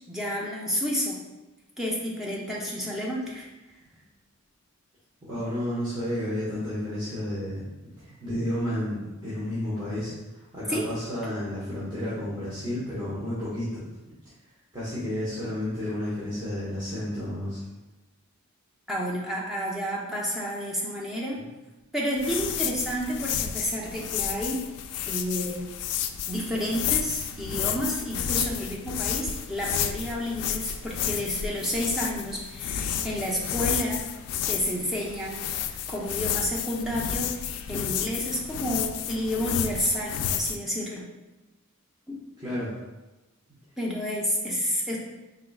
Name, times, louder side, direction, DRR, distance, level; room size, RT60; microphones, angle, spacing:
voice 1, 0.1-1.2 1.8-3.5 10.7-10.9 18.9-21.4 21.9-24.6 25.1-25.6 26.3-34.0 34.5-35.4 35.7-41.0 42.1-42.2 43.8-45.0, equal, ahead, -5 dB, 0.7 m, -30 dB
voice 2, 5.2-7.6 8.0-13.8 14.7-17.6 42.4-42.7, left 1 dB, 20° right, -12 dB, 1.2 m, -31 dB
sound 1, 22.2-40.6, left 9 dB, 85° left, 0.3 m, -31 dB
4.7 x 3.8 x 2.3 m, 1.1 s
head